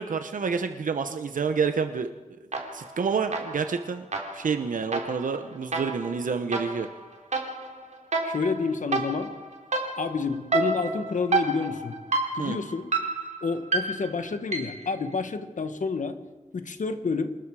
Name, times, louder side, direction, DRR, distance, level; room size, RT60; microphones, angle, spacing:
voice 1, 0.0-2.1 2.7-4.0 4.3-6.9 12.4-12.6, right 5 dB, 85° right, 8 dB, 1.1 m, -28 dB
sound 1, 2.5-3.0 3.3-14.9, right 3 dB, 60° right, 3.5 m, -30 dB
voice 2, 8.2-9.3 10.0-12.0 12.3-12.9 13.4-16.2 16.5-17.3, left 4 dB, 70° left, 9 dB, 1.7 m, -29 dB
27.5 x 20.5 x 5.0 m, 1.2 s
wide cardioid pair, 100°, 13 cm